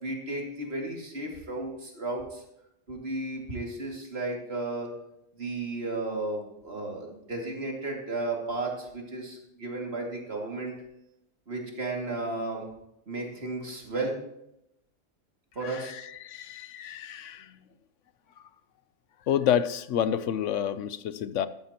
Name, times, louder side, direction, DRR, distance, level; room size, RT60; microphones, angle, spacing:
voice 1, 0.0-2.4 2.9-4.9 5.4-10.7 11.5-12.7 13.1-14.2 15.6-15.9, right 2 dB, 50° right, 2.7 m, -34 dB
voice 2, 15.6-17.5 19.3-21.5, left 9 dB, 75° left, 1.0 m, -29 dB
13.5 x 12.5 x 3.0 m
omnidirectional pair, 1.3 m